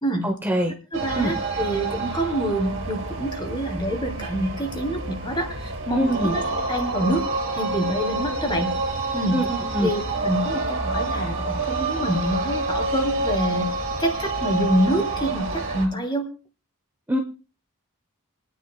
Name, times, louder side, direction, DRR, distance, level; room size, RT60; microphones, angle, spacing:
voice 1, 0.2-0.7 1.2-1.3 6.0-6.4 9.3-9.9 17.1-17.2, right 1 dB, 10° right, 3 dB, 0.9 m, -24 dB
voice 2, 0.9-6.4 6.7-7.2 7.5-8.7 9.1-9.4 9.8-16.2, equal, 20° left, 4 dB, 2.8 m, -26 dB
sound 1, 0.9-15.9, right 3 dB, 60° right, 2.8 m, -28 dB
28.5 x 9.9 x 2.3 m, 0.35 s
head